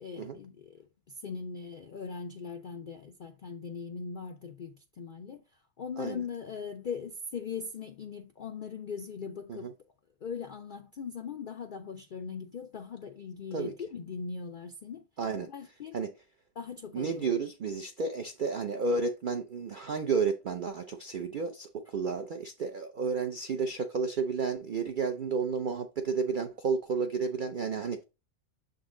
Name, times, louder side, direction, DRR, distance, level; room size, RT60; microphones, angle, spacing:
voice 1, 0.0-5.4 5.8-9.7 10.2-15.1 15.4-16.0 16.6-17.3, left 5 dB, 90° left, 0.4 m, -40 dB
voice 2, 15.2-15.5 15.9-16.1 16.9-28.0, right 5 dB, 70° right, 0.4 m, -31 dB
7.1 x 3.9 x 3.7 m
omnidirectional pair, 1.6 m